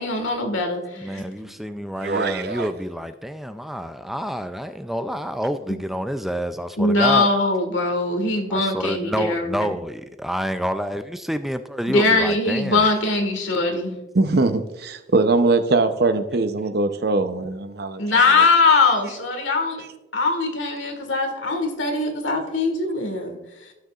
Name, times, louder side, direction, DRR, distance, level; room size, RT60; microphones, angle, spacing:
voice 1, 0.0-1.2 6.8-9.7 11.9-14.0 18.0-19.8 20.1-23.4, left 3 dB, 90° left, 1.7 m, -21 dB
voice 2, 1.0-7.3 8.5-12.9, equal, ahead, 0.3 m, -28 dB
voice 3, 2.0-2.7 14.1-18.0, right 3 dB, 55° right, 0.7 m, -21 dB
16.0 x 6.5 x 2.4 m
head